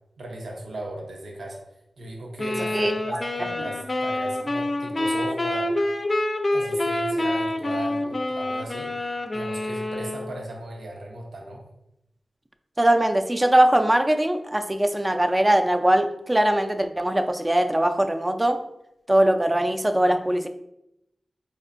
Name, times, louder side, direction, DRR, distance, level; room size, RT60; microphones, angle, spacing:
voice 1, 0.2-1.6 2.0-5.7 6.5-11.6, right 1 dB, 85° right, 0 dB, 0.6 m, -37 dB
sound 1, 2.4-10.4, left 1 dB, 45° left, 0.4 m, -27 dB
voice 2, 2.7-3.2 12.8-18.6 19.1-20.5, right 1 dB, 20° right, 7 dB, 0.3 m, -21 dB
4.2 x 2.4 x 2.5 m, 0.84 s
cardioid pair, 40°, 0 cm